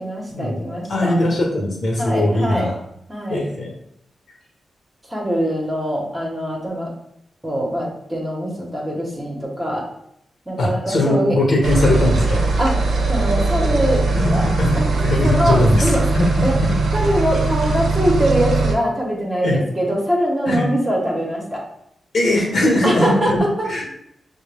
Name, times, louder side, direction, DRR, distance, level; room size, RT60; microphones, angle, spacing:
voice 1, 0.0-1.1 2.0-2.7 3.1-3.4 5.1-6.9 7.4-9.8 10.5-11.4 12.6-12.7 13.1-14.4 14.8-14.9 15.2-16.1 16.4-16.5 16.9-21.6 22.8-23.3, equal, 15° right, -2 dB, 1.0 m, -22 dB
voice 2, 0.9-2.7 3.3-3.7 10.6-12.4 14.1-14.7 15.0-15.9 16.1-16.8 19.4-19.6 20.5-20.7 22.1-23.9, left 1 dB, 55° left, -1 dB, 1.2 m, -19 dB
sound 1, 11.6-18.7, right 3 dB, 75° right, 0.7 m, -20 dB
6.3 x 2.2 x 3.4 m, 0.76 s
wide cardioid pair, 130°, 0 cm